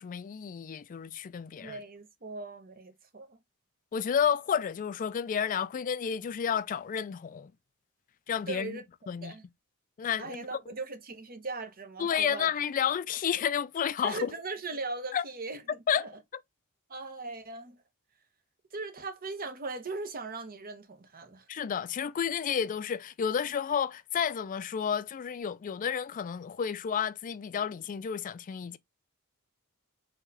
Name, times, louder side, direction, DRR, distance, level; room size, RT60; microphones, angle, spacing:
voice 1, 0.0-1.8 3.9-7.5 8.3-8.8 9.1-9.3 10.0-10.5 12.0-14.3 15.1-15.2 15.9-16.1 21.5-28.8, left 7 dB, 40° left, 0.3 m, -31 dB
voice 2, 1.6-3.4 8.5-8.8 9.2-9.4 10.2-12.5 14.0-16.1 16.9-17.8 18.7-21.5, right 3 dB, 45° right, 0.9 m, -39 dB
4.2 x 2.9 x 3.9 m
head